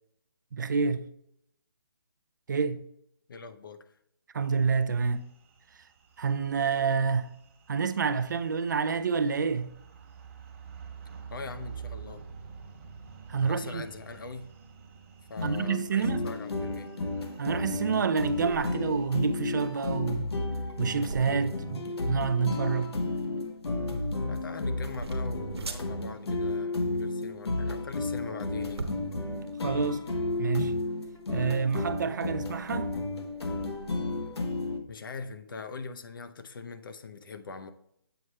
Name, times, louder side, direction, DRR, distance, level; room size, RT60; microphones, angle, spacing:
voice 1, 0.5-1.0 2.5-2.8 4.3-5.3 6.2-7.3 7.7-9.7 13.3-13.8 15.4-16.3 17.4-20.3 20.8-22.9 29.6-30.1 30.4-30.7 31.3-32.9, right 5 dB, 50° right, 0.4 m, -28 dB
voice 2, 3.3-4.0 11.3-12.2 13.4-14.5 15.3-16.9 24.3-28.9 34.9-37.7, left 4 dB, 55° left, 0.6 m, -42 dB
sound 1, 4.5-19.1, right 6 dB, 30° right, 1.0 m, -49 dB
sound 2, 15.4-34.8, left 2 dB, 85° left, 1.1 m, -33 dB
sound 3, 18.2-33.9, right 3 dB, 90° right, 1.1 m, -45 dB
7.7 x 4.3 x 3.2 m
hypercardioid pair, 165°, 13 cm